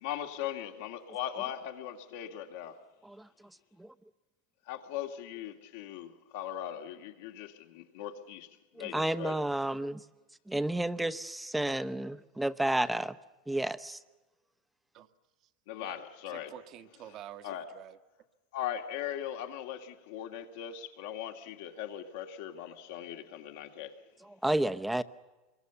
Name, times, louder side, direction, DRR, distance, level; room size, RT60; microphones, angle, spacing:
voice 1, 0.0-2.8 4.7-8.5 8.7-9.4 15.7-16.5 17.4-17.7 18.5-24.0, left 10 dB, 75° left, 2.1 m, -39 dB
voice 2, 8.8-10.0 10.5-13.2 13.5-14.0 24.4-25.0, right 1 dB, 5° right, 0.8 m, -31 dB
voice 3, 16.3-18.0, right 10 dB, 50° right, 1.5 m, -48 dB
25.5 x 22.5 x 7.0 m
hypercardioid pair, 105°, 0 cm